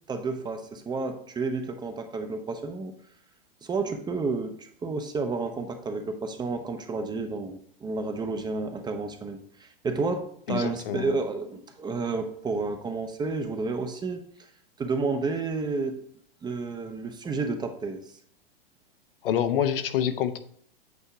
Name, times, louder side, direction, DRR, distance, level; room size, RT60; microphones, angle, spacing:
voice 1, 0.1-2.9 3.6-14.5 14.8-16.0 16.4-18.0, right 3 dB, 15° right, 6 dB, 0.6 m, -31 dB
voice 2, 10.5-11.1 19.2-20.4, left 9 dB, 65° left, 11 dB, 0.7 m, -26 dB
8.3 x 2.8 x 4.6 m, 0.64 s
hypercardioid pair, 105°, 30 cm